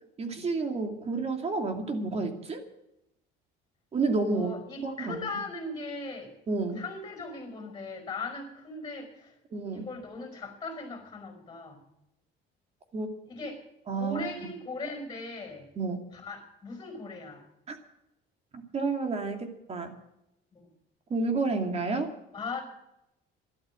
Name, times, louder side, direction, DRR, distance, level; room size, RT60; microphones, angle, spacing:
voice 1, 0.2-2.6 3.9-4.6 4.8-5.3 6.5-6.8 9.5-9.9 12.9-13.1 13.9-14.5 15.8-16.0 17.7-17.8 18.5-19.9 21.1-22.1, right 3 dB, 30° right, 6 dB, 2.5 m, -30 dB
voice 2, 4.3-6.3 6.8-9.3 9.7-11.9 13.3-13.6 14.0-15.7 16.1-17.4 20.5-20.7 22.3-22.6, left 3 dB, 20° left, 5 dB, 5.5 m, -39 dB
13.0 x 12.5 x 7.7 m, 0.82 s
cardioid pair, 150°, 20 cm